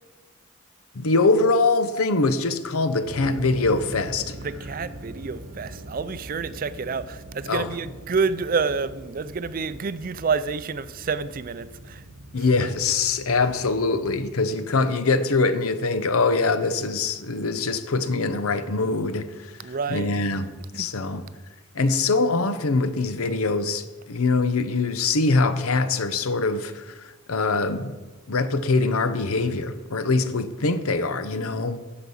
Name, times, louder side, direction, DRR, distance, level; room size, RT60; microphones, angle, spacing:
voice 1, 0.9-4.3 7.5-7.7 12.3-19.5 19.9-20.5 20.7-21.2 21.7-27.9 28.3-31.8, left 3 dB, 90° left, 0.8 m, -23 dB
sound 1, 3.0-14.2, right 1 dB, 75° right, 1.0 m, -42 dB
voice 2, 4.4-12.0 12.3-12.4 19.6-20.1 20.7-20.9, right 5 dB, 40° right, 0.4 m, -28 dB
9.8 x 5.9 x 7.0 m
head